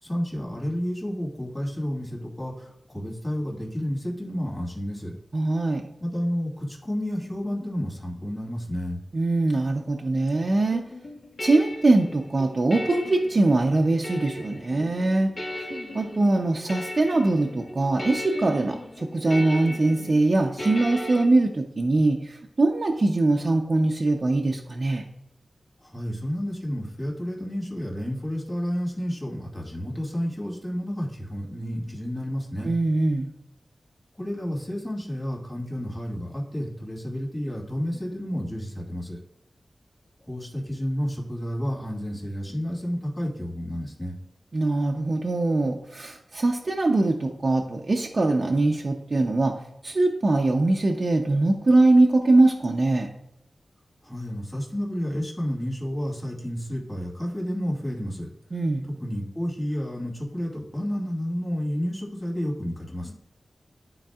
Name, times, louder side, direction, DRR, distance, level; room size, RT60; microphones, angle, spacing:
voice 1, 0.0-5.2 6.0-9.0 25.8-32.7 34.2-39.2 40.2-44.2 54.0-58.3 58.8-63.1, equal, 15° left, -3 dB, 2.2 m, -31 dB
voice 2, 5.3-5.8 9.1-10.8 11.4-15.3 15.9-25.0 32.6-33.3 44.5-49.5 49.8-53.1 58.5-58.9, right 2 dB, 50° right, 0 dB, 0.7 m, -22 dB
sound 1, 10.7-21.2, left 1 dB, 60° left, 1.5 m, -37 dB
12.0 x 4.0 x 2.4 m, 0.83 s
wide cardioid pair, 70°, 0 cm